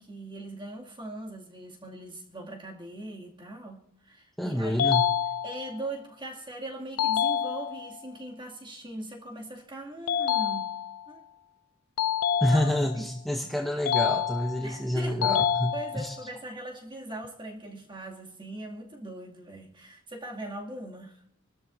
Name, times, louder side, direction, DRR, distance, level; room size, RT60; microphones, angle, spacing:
voice 1, 0.0-4.9 5.4-10.8 11.1-11.2 12.5-13.1 14.6-15.3 15.7-21.2, right 1 dB, 25° right, 2.4 m, -40 dB
voice 2, 4.4-5.1 12.4-16.2, left 1 dB, ahead, 0.8 m, -28 dB
sound 1, 4.8-5.8 7.0-8.0 10.1-11.1 12.0-13.0 13.9-14.8 15.2-16.2, left 8 dB, 75° left, 0.5 m, -27 dB
27.5 x 13.0 x 2.7 m
head